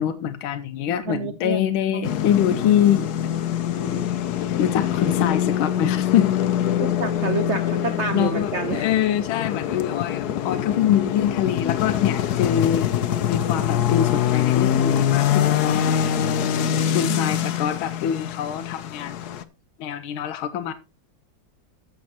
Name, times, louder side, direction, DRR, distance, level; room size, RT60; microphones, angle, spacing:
voice 1, 0.0-3.4 3.8-4.1 4.6-6.3 8.1-12.9 13.3-16.2 16.9-19.2 19.8-20.7, left 10 dB, 90° left, 1.5 m, -24 dB
voice 2, 1.1-1.6 1.9-2.1 6.8-8.9 17.0-17.6, right 5 dB, 85° right, 0.6 m, -29 dB
sound 1, 2.0-19.4, left 10 dB, 65° left, 1.1 m, -24 dB
14.0 x 7.3 x 2.9 m
omnidirectional pair, 2.2 m